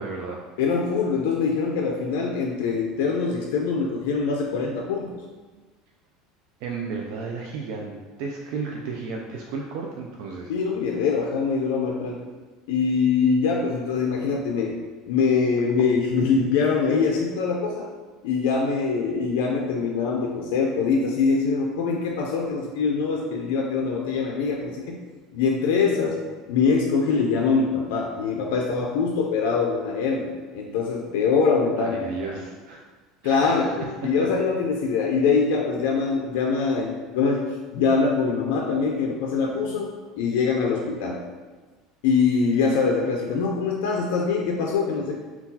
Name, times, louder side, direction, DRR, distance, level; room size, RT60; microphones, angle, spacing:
voice 1, 0.0-0.4 6.6-10.5 31.8-32.8 33.2-33.7 34.2-34.3, right 4 dB, 65° right, 0 dB, 0.3 m, -33 dB
voice 2, 0.6-5.2 10.5-12.2 12.7-17.9 18.2-25.0 25.3-26.2 26.5-32.0 32.3-32.4 33.2-37.4 37.7-41.2 42.0-45.2, left 5 dB, 80° left, 0 dB, 0.4 m, -23 dB
3.7 x 2.3 x 2.7 m, 1.3 s
cardioid pair, 160°, 0 cm